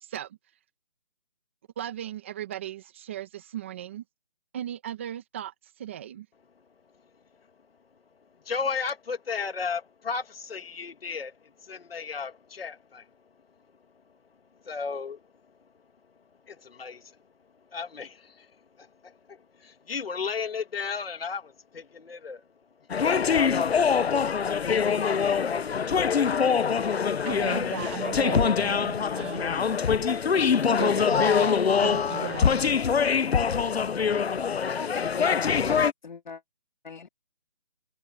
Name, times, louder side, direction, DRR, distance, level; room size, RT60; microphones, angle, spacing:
voice 1, 0.0-0.4 1.8-4.0 4.5-6.3 27.2-29.6 30.6-31.5 31.8-32.6, right 11 dB, 10° right, 1.1 m, -37 dB
voice 2, 8.4-13.1 14.6-15.2 16.5-17.2 17.7-18.5 18.8-22.4, left 5 dB, 70° left, 1.4 m, -34 dB
sound 1, 22.9-35.9, left 6 dB, 90° left, 0.8 m, -24 dB
voice 3, 34.8-36.4 36.8-37.1, left 5 dB, 50° left, 2.2 m, -40 dB
hypercardioid pair, 170°, 30 cm